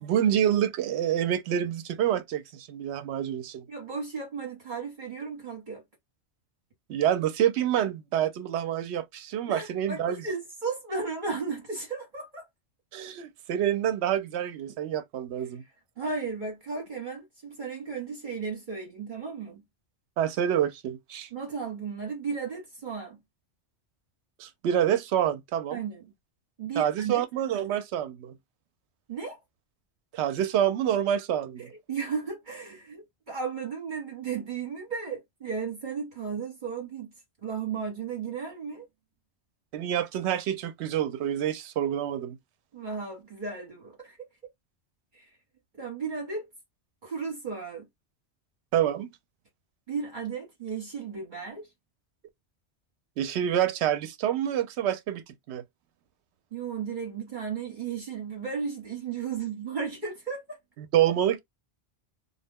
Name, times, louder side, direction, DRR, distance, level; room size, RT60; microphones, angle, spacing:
voice 1, 0.0-3.7 6.9-10.2 12.9-15.6 20.2-21.3 24.4-25.8 26.8-28.3 30.1-31.7 39.7-42.4 48.7-49.1 53.2-55.6 60.8-61.4, right 10 dB, 75° right, 0.8 m, -27 dB
voice 2, 3.7-5.8 9.5-12.5 16.0-19.6 21.3-23.2 25.7-26.0 26.6-27.2 29.1-29.4 31.6-37.1 37.4-38.9 42.7-44.2 45.1-45.3 45.7-46.5 47.0-47.9 49.9-51.6 56.5-60.6, right 5 dB, 45° right, 1.1 m, -34 dB
2.3 x 2.1 x 3.4 m
omnidirectional pair, 1.2 m